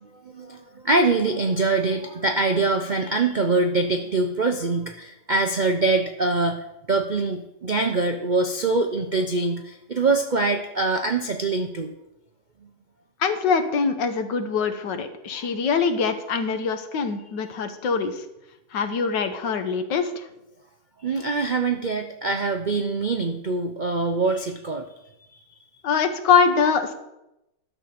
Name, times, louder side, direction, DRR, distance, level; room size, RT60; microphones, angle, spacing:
voice 1, 0.2-11.9 15.3-15.5 21.0-24.9 25.3-25.4, right 3 dB, 60° right, 4 dB, 0.5 m, -24 dB
voice 2, 13.2-18.2 18.7-20.2 25.8-26.9, left 5 dB, 80° left, 8 dB, 1.7 m, -23 dB
11.0 x 5.9 x 6.7 m, 0.90 s
omnidirectional pair, 1.9 m